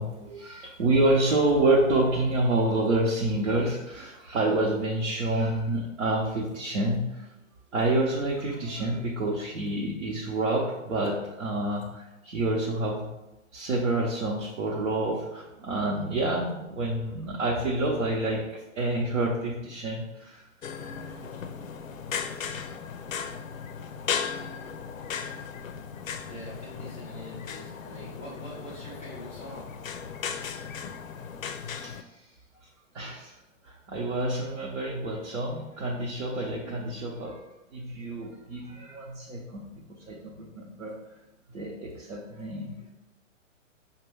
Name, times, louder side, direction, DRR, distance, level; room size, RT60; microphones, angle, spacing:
voice 1, 0.0-7.3 7.7-13.1 13.5-20.4 21.2-21.3 31.8-32.0 32.9-33.3 33.6-37.4 37.7-40.9 41.5-42.8, right 2 dB, 65° right, -4 dB, 0.9 m, -28 dB
sound 1, 20.6-32.0, left 7 dB, 80° left, 0.5 m, -36 dB
voice 2, 26.2-29.7, equal, 10° left, -9 dB, 0.3 m, -44 dB
5.2 x 2.2 x 3.4 m, 0.97 s
figure-of-eight pair, 120°, 40 cm